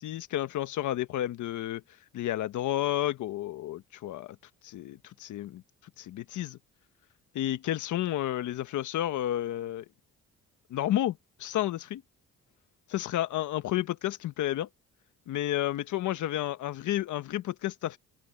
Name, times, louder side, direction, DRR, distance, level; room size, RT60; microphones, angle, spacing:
voice 1, 0.0-1.8 2.1-4.4 4.6-5.6 6.0-6.6 7.3-9.8 10.7-12.0 12.9-14.7 15.3-18.0, left 13 dB, 80° left, 1.3 m, -31 dB
cardioid pair, 90°, 30 cm